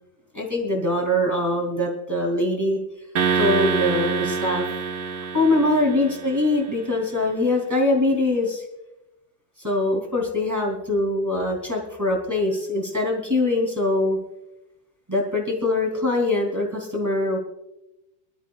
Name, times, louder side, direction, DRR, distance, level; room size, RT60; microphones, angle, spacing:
voice 1, 0.3-2.8 3.3-4.6 5.3-8.6 9.6-14.2 15.1-17.4, left 2 dB, 10° right, -1 dB, 2.9 m, -23 dB
sound 1, 3.2-6.6, right 5 dB, 85° right, 2.1 m, -26 dB
24.0 x 12.5 x 2.4 m, 0.91 s
omnidirectional pair, 2.3 m